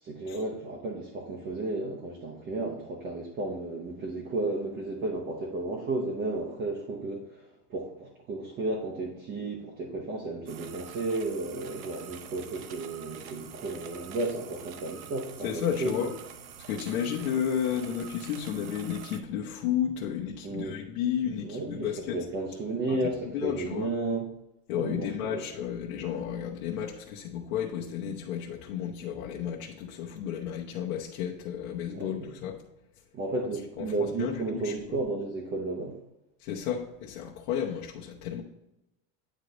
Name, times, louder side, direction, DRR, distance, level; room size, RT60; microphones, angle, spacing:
voice 1, 0.0-16.1 20.4-20.8 21.4-24.3 24.7-25.4 31.9-32.3 33.1-36.0, right 2 dB, 20° right, -1 dB, 0.7 m, -33 dB
sound 1, 10.5-19.2, right 9 dB, 60° right, 0.8 m, -46 dB
voice 2, 15.4-16.1 16.7-22.2 22.9-23.0 23.3-23.9 24.7-32.6 33.8-33.9 34.2-35.0 36.4-38.4, left 9 dB, 65° left, -2 dB, 1.0 m, -32 dB
9.3 x 3.4 x 3.9 m, 0.88 s
supercardioid pair, 160°, 46 cm